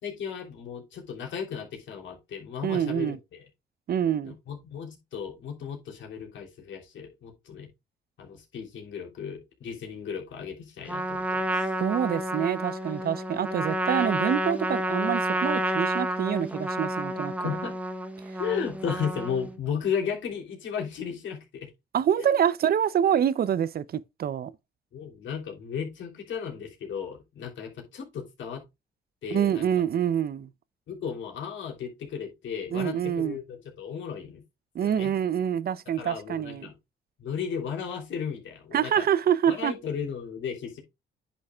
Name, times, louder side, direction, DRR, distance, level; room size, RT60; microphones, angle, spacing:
voice 1, 0.0-3.4 4.2-7.7 8.2-11.7 17.4-17.7 18.4-21.7 22.2-22.4 24.9-28.6 29.2-29.7 30.9-34.4 34.8-35.1 36.0-36.7 37.2-39.1 39.5-40.8, left 7 dB, 70° left, 3.3 m, -35 dB
voice 2, 2.6-3.2 3.9-4.3 11.8-17.5 21.9-24.5 29.3-30.5 32.7-33.4 34.7-36.7 38.7-39.7, right 9 dB, 50° right, 0.7 m, -26 dB
Trumpet, 10.9-19.6, right 1 dB, 5° right, 1.1 m, -30 dB
9.9 x 6.3 x 2.4 m
cardioid pair, 90°, 20 cm